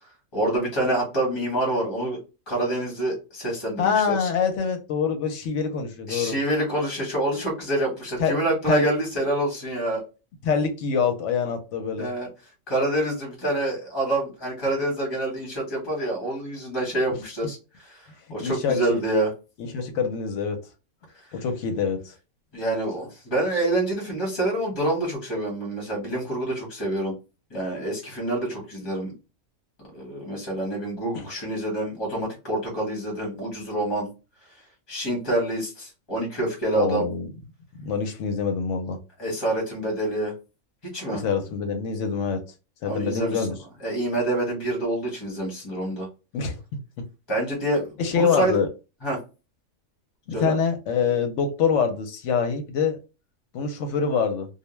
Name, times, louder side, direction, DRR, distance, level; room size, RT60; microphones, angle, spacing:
voice 1, 0.3-2.2 2.5-4.3 6.1-10.0 12.0-12.3 12.7-19.3 22.5-27.1 27.5-29.1 29.9-34.1 34.9-37.0 39.2-40.3 40.8-41.2 42.9-43.5 43.8-46.1 47.3-48.5 49.0-49.2 50.3-50.6, right 1 dB, 20° left, 1.0 m, -27 dB
voice 2, 3.8-6.4 8.2-8.4 8.7-8.8 10.4-12.1 18.4-19.0 19.6-20.6 21.3-22.1 31.1-31.2 36.7-37.3 37.8-39.0 41.1-42.4 42.8-43.5 46.3-46.6 47.0-47.1 48.0-48.7 50.3-53.0 53.5-54.5, left 6 dB, 65° left, 0.9 m, -25 dB
2.3 x 2.1 x 3.0 m
omnidirectional pair, 1.4 m